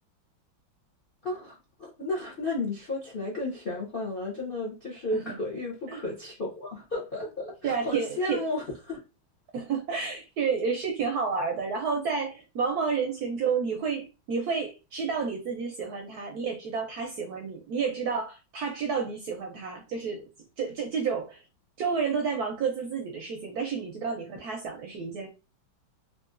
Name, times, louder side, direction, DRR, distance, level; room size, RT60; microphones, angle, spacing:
voice 1, 1.2-9.0, left 2 dB, 55° left, 0.6 m, -33 dB
voice 2, 7.6-8.4 9.5-20.3 20.6-21.4 21.8-25.3, right 5 dB, 70° right, 0.9 m, -30 dB
3.7 x 2.6 x 2.5 m
omnidirectional pair, 2.2 m